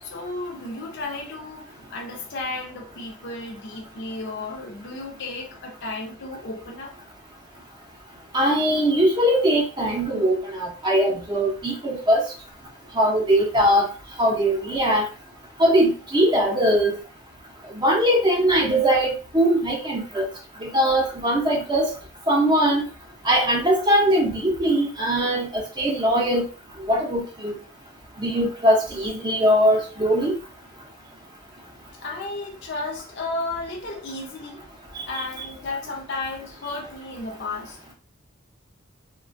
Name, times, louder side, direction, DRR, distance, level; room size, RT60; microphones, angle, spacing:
voice 1, 0.0-6.9 32.0-34.7 35.1-37.8, left 2 dB, 60° left, 0.6 m, -33 dB
voice 2, 8.3-12.2 13.0-13.9 14.2-15.1 15.6-16.9 17.8-20.3 20.6-21.9 22.3-22.8 23.2-26.5 26.9-27.6 28.2-30.3 35.1-35.5, equal, 20° right, 0.6 m, -21 dB
3.1 x 2.2 x 2.5 m
head